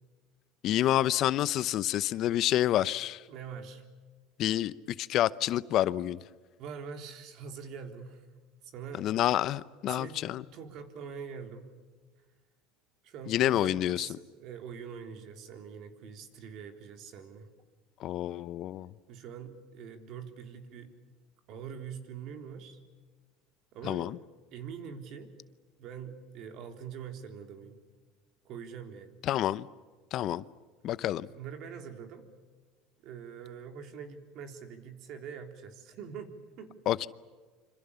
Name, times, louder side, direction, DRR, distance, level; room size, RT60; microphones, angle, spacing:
voice 1, 0.6-3.2 4.4-6.2 9.0-10.4 13.3-14.1 18.0-18.9 23.8-24.2 29.2-29.7 30.1-30.4 30.8-31.3 36.9-37.1, left 13 dB, 50° left, 0.8 m, -28 dB
voice 2, 3.3-3.8 6.6-8.3 8.6-9.1 9.9-10.2 10.5-11.7 13.0-17.5 19.1-20.9 21.5-22.8 23.7-24.1 24.5-25.3 25.8-27.8 28.4-29.1 31.3-32.2 33.0-36.8, right 6 dB, 55° right, 3.7 m, -44 dB
26.5 x 26.0 x 7.0 m
supercardioid pair, 125°, 0 cm